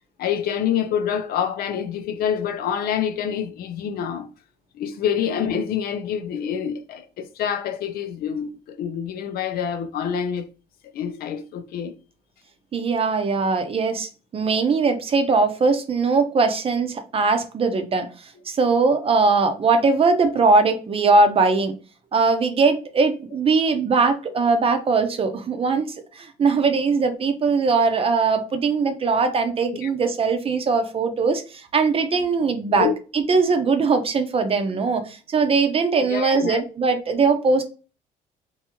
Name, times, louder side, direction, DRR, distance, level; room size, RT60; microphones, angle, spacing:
voice 1, 0.2-4.3 4.7-10.5 10.9-12.0 29.8-29.9 32.7-32.9 36.0-36.6, left 8 dB, 65° left, 0.5 m, -26 dB
voice 2, 12.7-21.7 22.1-32.9 33.1-37.6, right 4 dB, 35° right, 0.7 m, -20 dB
3.5 x 2.7 x 2.9 m
cardioid pair, 110°, 17 cm